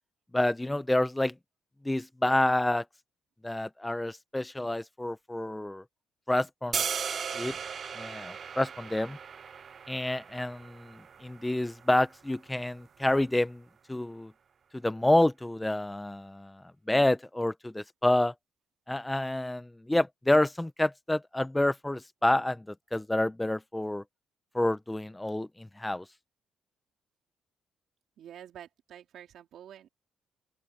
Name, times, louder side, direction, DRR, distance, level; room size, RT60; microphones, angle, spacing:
voice 1, 0.3-1.4 1.8-2.8 3.4-5.8 6.3-6.8 7.3-7.6 7.9-9.2 9.9-14.3 14.7-18.3 18.9-24.0 24.5-26.0, left 1 dB, 10° left, 1.1 m, -28 dB
sound 1, 6.7-12.8, right 7 dB, 50° right, 0.3 m, -37 dB
voice 2, 28.2-29.9, right 10 dB, 70° right, 4.4 m, -48 dB
open air
cardioid pair, 90°, 0 cm